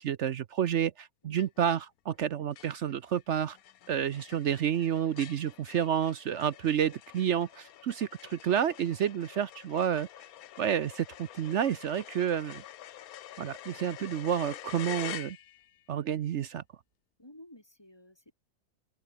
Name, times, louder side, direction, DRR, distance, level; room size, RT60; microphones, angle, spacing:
voice 1, 0.0-3.6 3.9-10.1 10.6-12.6 13.4-15.4 15.9-16.6, right 9 dB, 60° right, 0.8 m, -30 dB
sound 1, 1.4-1.8 2.2-2.3 2.6-15.8, left 12 dB, 70° left, 1.1 m, -47 dB
voice 2, 17.2-18.3, left 1 dB, 15° left, 3.2 m, -53 dB
omnidirectional pair, 1.6 m